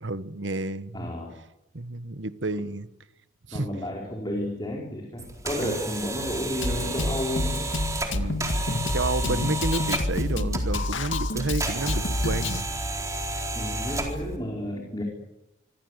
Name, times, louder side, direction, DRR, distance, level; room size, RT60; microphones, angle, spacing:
voice 1, 0.0-1.1 1.7-2.9 3.5-3.7 5.6-5.8 8.1-8.5 8.9-12.7, right 2 dB, 80° right, 1.4 m, -30 dB
voice 2, 0.9-1.3 3.5-7.7 8.1-8.4 9.2-9.5 13.5-15.0, left 1 dB, 20° left, 4.8 m, -32 dB
sound 1, 5.2-14.4, right 2 dB, 15° right, 4.2 m, -32 dB
Drum kit, 6.6-12.6, left 2 dB, 85° left, 2.2 m, -28 dB
25.5 x 25.0 x 8.2 m
head